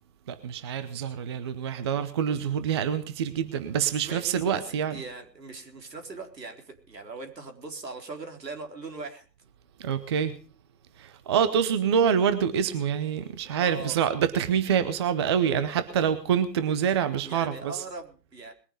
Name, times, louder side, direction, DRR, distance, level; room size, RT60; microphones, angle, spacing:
voice 1, 0.3-5.0 9.8-10.3 11.0-17.8, right 8 dB, 15° right, 0.6 m, -26 dB
voice 2, 4.0-9.3 13.2-14.0 17.2-18.5, right 3 dB, 80° right, 4.4 m, -40 dB
21.5 x 10.0 x 5.2 m
figure-of-eight pair, 135°, 49 cm